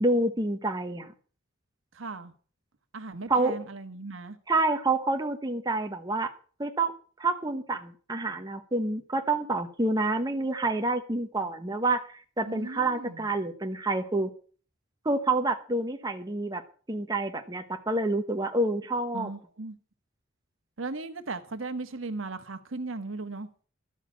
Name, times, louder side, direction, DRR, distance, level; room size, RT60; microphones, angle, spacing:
voice 1, 0.0-1.1 3.3-3.6 4.5-6.3 6.6-6.9 7.2-14.3 15.0-16.6 16.9-19.3, right 2 dB, 20° right, 1.0 m, -28 dB
voice 2, 1.9-2.3 2.9-4.4 12.4-13.3 19.1-19.8 20.8-23.5, right 3 dB, 70° right, 1.3 m, -37 dB
12.5 x 6.5 x 8.4 m
head